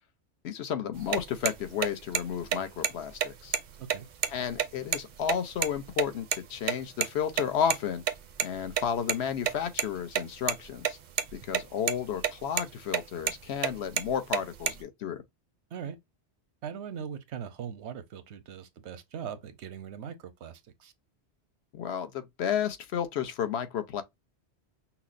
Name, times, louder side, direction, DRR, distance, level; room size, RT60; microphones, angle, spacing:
voice 1, 0.4-3.5 4.3-8.0 8.4-11.0 11.3-15.2 21.7-24.0, left 8 dB, 75° left, 1.0 m, -32 dB
sound 1, 1.0-6.0 6.3-6.4 6.7-6.8 7.0-7.1 7.4-7.5 7.7-7.8 8.1-9.1 9.4-9.9 10.1-10.9 11.2-11.6 11.9-12.3 12.6-12.7 12.9-13.4 13.6-14.8, right 8 dB, 55° right, 0.5 m, -28 dB
voice 2, 16.6-20.9, right 8 dB, 85° right, 1.0 m, -40 dB
5.7 x 2.0 x 2.5 m
omnidirectional pair, 1.1 m